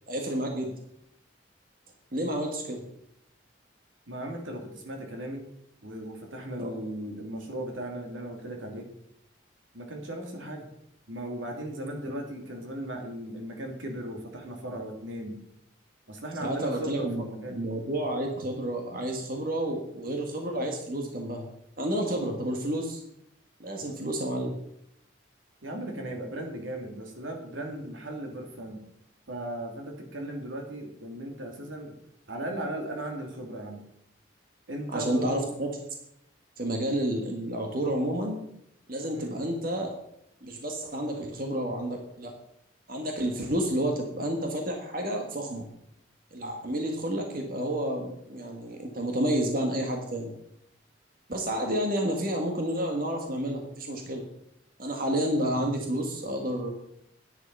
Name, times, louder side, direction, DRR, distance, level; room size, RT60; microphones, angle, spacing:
voice 1, 0.1-0.7 2.1-2.8 6.6-6.7 16.4-17.2 17.5-21.4 21.8-23.0 23.6-24.6 34.9-35.8 36.6-38.4 38.9-39.9 40.4-42.3 42.9-45.7 46.3-50.3 51.3-54.2 54.8-56.7, right 1 dB, 45° right, 2 dB, 1.7 m, -30 dB
voice 2, 4.1-5.4 5.8-8.9 9.7-10.7 11.1-15.4 16.1-17.6 23.8-23.9 25.6-28.8 29.3-31.9 32.3-33.8 34.7-35.5 39.1-39.4, right 1 dB, 85° right, 2 dB, 2.7 m, -37 dB
10.5 x 10.0 x 5.5 m, 0.77 s
head